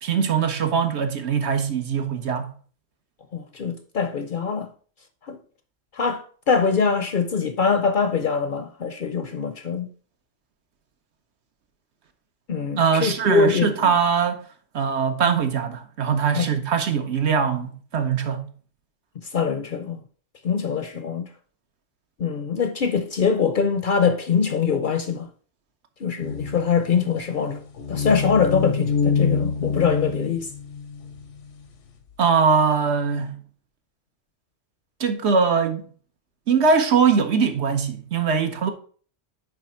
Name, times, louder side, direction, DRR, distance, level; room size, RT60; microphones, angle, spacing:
voice 1, 0.0-2.5 12.8-14.4 14.7-18.5 32.2-33.4 35.0-35.9 36.5-38.7, right 6 dB, 65° right, 1.1 m, -21 dB
voice 2, 3.3-4.7 5.2-5.4 5.9-9.9 12.5-13.7 16.3-16.5 19.3-20.0 20.4-21.3 22.2-25.3 26.0-27.6 27.9-30.5, left 5 dB, 55° left, 0.7 m, -23 dB
sound 1, 26.2-31.4, left 5 dB, 85° left, 1.2 m, -26 dB
9.1 x 3.4 x 4.3 m
omnidirectional pair, 1.2 m